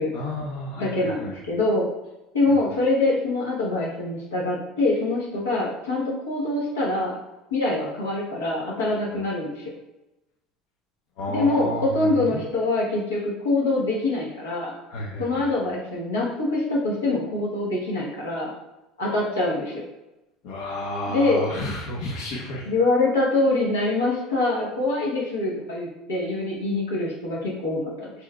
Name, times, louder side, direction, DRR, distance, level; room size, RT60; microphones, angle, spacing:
voice 1, 0.1-1.3 11.2-12.4 14.9-15.5 20.4-22.7, left 1 dB, 65° left, -3 dB, 0.7 m, -31 dB
voice 2, 0.8-1.9 2.3-7.2 7.5-9.7 11.3-14.7 15.2-18.5 19.0-19.8 21.1-21.5 22.7-28.1, left 2 dB, 90° left, -4 dB, 1.1 m, -24 dB
4.4 x 3.2 x 2.3 m, 0.99 s
hypercardioid pair, 75°, 0 cm